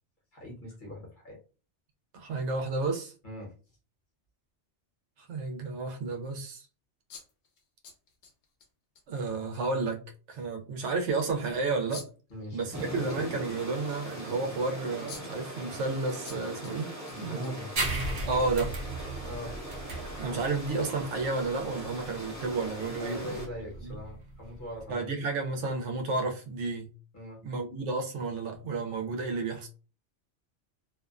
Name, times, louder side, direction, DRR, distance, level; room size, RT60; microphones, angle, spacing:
voice 1, 0.3-1.4 3.2-3.5 12.3-12.6 17.1-17.7 19.2-19.5 23.0-25.1 27.1-27.4, left 1 dB, 45° left, 1.1 m, -41 dB
voice 2, 2.1-3.1 5.2-6.7 9.1-10.0 10.3-12.1 12.5-16.9 17.2-17.6 18.3-18.8 20.2-23.3 23.8-23.9 24.9-26.9 27.4-29.7, right 3 dB, 85° right, 0.9 m, -31 dB
sound 1, 7.1-8.7 8.9-9.0 9.5-9.6 11.9-12.3 14.6-14.7 15.1-15.5 16.2-16.7 17.1-18.0, left 5 dB, 70° left, 0.9 m, -47 dB
sound 2, 12.7-23.5, right 1 dB, 20° right, 0.6 m, -41 dB
sound 3, 17.8-24.9, right 2 dB, 55° right, 0.8 m, -36 dB
2.5 x 2.1 x 2.4 m
omnidirectional pair, 1.2 m